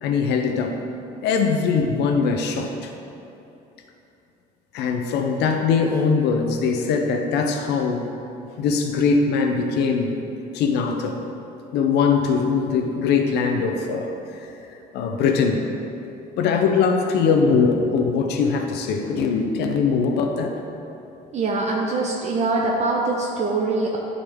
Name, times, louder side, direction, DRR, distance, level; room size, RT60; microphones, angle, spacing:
voice 1, 0.0-0.8 1.2-2.9 4.7-8.1 8.6-10.2 10.5-11.2 11.7-15.7 16.4-20.6, left 5 dB, 80° left, 4 dB, 0.6 m, -21 dB
voice 2, 21.3-24.0, right 3 dB, 40° right, -2 dB, 0.7 m, -23 dB
9.8 x 3.9 x 3.5 m, 2.9 s
cardioid pair, 110°, 17 cm